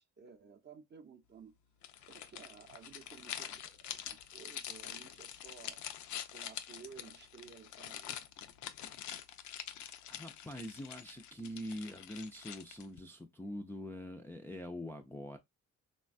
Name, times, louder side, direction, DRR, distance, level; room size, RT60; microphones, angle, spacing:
voice 1, 0.0-1.6 2.0-5.8 6.3-8.3, right 6 dB, 35° right, 0.6 m, -55 dB
sound 1, 1.8-13.0, left 10 dB, 70° left, 0.4 m, -46 dB
voice 2, 10.1-15.4, equal, 10° left, 0.3 m, -44 dB
3.2 x 2.2 x 2.4 m
cardioid pair, 90°, 30 cm